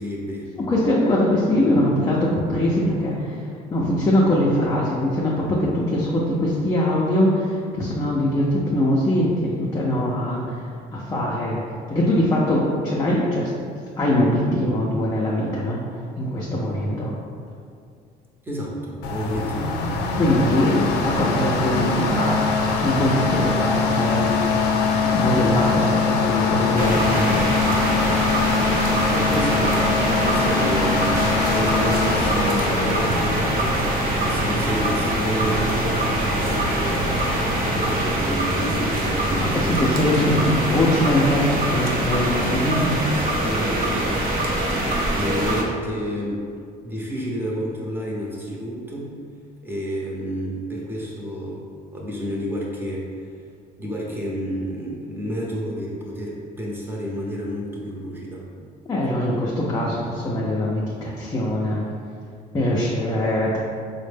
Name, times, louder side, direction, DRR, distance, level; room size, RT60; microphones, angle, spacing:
voice 1, 0.0-0.5 18.4-19.7 29.1-31.1 31.4-33.8 34.2-37.1 37.7-39.8 42.4-44.5 45.1-46.5 46.8-49.1 49.6-51.6 51.9-53.1 53.8-58.4, equal, 10° right, -4 dB, 0.7 m, -30 dB
voice 2, 0.7-3.4 3.7-10.6 10.9-11.6 11.9-13.5 14.0-17.1 20.2-22.4 22.8-24.4 25.1-27.5 39.4-42.9 58.9-61.8 62.5-63.6, left 1 dB, 20° left, -5 dB, 0.5 m, -22 dB
sound 1, 19.0-38.0, left 4 dB, 90° left, 0.4 m, -23 dB
sound 2, 26.8-45.6, right 1 dB, 60° right, 0.6 m, -24 dB
4.1 x 2.1 x 3.3 m, 2.2 s
cardioid pair, 110°, 17 cm